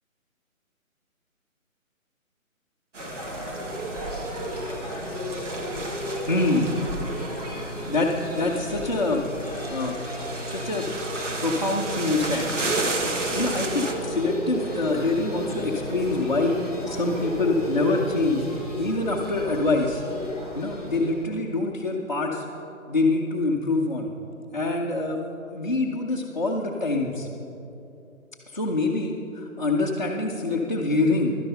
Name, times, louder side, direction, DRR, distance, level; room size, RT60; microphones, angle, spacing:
sound 1, 2.9-13.9, right 2 dB, 60° right, 1.4 m, -34 dB
sound 2, 3.0-21.3, equal, 25° right, 1.4 m, -33 dB
voice 1, 6.3-6.7 7.9-10.0 10.5-10.9 11.4-12.5 12.9-13.1 13.3-16.6 16.9-18.5 18.8-20.0 20.5-22.4 22.9-24.1 24.5-25.2 25.5-27.3 28.5-31.3, left 2 dB, 35° left, -3 dB, 0.7 m, -25 dB
12.0 x 11.0 x 5.5 m, 2.8 s
hypercardioid pair, 180°, 42 cm